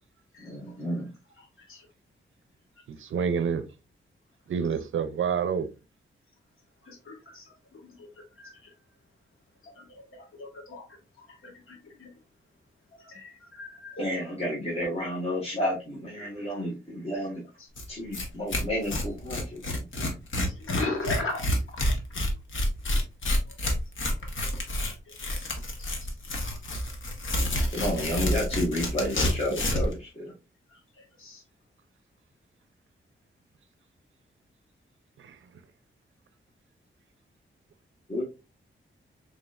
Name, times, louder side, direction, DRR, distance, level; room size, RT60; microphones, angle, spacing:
voice 1, 0.4-1.1 14.0-17.4 17.9-19.8 27.7-30.3 38.1-38.2, equal, 30° left, 1.4 m, -31 dB
voice 2, 2.9-3.6 4.5-5.7 35.2-35.4, right 7 dB, 70° right, 0.5 m, -28 dB
voice 3, 6.9-7.4 8.0-8.5 9.6-9.8 10.1-10.8 11.2-12.1 13.0-14.0 20.7-21.4 25.3-25.4 25.8-25.9 31.2-31.4, left 3 dB, 85° left, 1.4 m, -37 dB
Tearing, 17.8-17.9 18.1-18.2 18.5-29.9, left 1 dB, 70° left, 1.0 m, -28 dB
4.0 x 3.6 x 2.3 m
wide cardioid pair, 140°, 21 cm